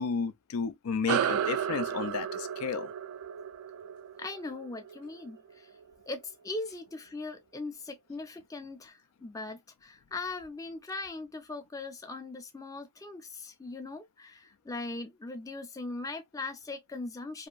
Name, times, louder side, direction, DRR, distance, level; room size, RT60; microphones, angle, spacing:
voice 1, 0.0-2.9, left 5 dB, 80° left, 0.4 m, -32 dB
sound 1, 1.1-5.9, right 9 dB, 85° right, 0.3 m, -33 dB
voice 2, 4.2-5.7 6.1-17.5, left 3 dB, 15° left, 0.4 m, -40 dB
2.8 x 2.5 x 2.2 m
head